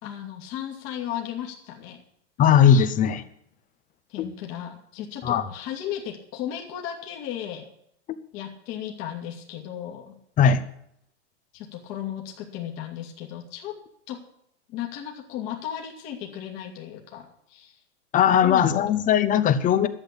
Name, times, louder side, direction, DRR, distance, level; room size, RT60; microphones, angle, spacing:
voice 1, 0.0-2.0 2.4-2.5 4.1-7.7 8.3-10.2 11.5-13.8 14.1-14.2 14.7-17.8 18.4-18.9, left 10 dB, 40° left, 1 dB, 2.7 m, -35 dB
voice 2, 2.4-3.2 4.2-4.3 5.2-5.5 10.4-10.6 18.1-19.9, left 8 dB, 20° left, 14 dB, 1.0 m, -19 dB
12.5 x 8.1 x 8.5 m, 0.72 s
hypercardioid pair, 120°, 35 cm